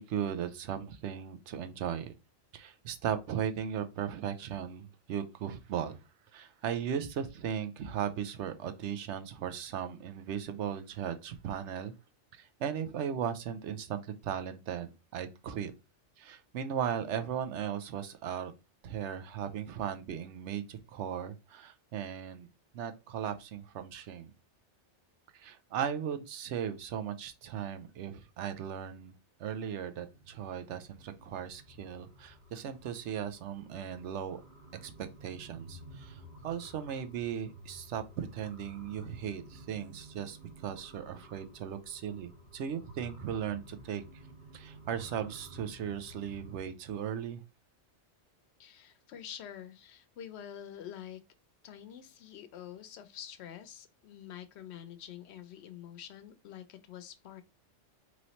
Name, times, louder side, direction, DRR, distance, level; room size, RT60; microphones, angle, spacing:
voice 1, 0.0-2.1 2.5-6.0 6.3-11.9 12.3-15.7 16.2-18.5 18.8-22.5 22.7-24.3 25.3-29.1 29.4-34.4 34.8-44.0 44.5-47.4, right 8 dB, 75° right, 0.9 m, -37 dB
sound 1, 30.0-46.7, equal, 40° right, 1.2 m, -53 dB
voice 2, 48.6-51.2 51.6-57.4, left 10 dB, 70° left, 0.8 m, -47 dB
3.1 x 3.0 x 4.0 m
omnidirectional pair, 1.2 m